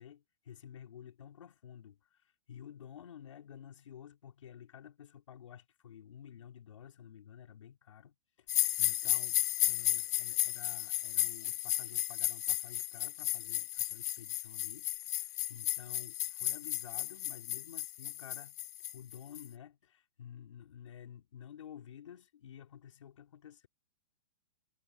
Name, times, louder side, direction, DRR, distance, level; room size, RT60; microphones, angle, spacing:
voice 1, 0.0-18.6 18.9-23.7, left 9 dB, 85° left, 3.3 m, -52 dB
sound 1, 8.5-19.5, left 14 dB, 35° left, 0.4 m, -34 dB
hypercardioid pair, 180°, 16 cm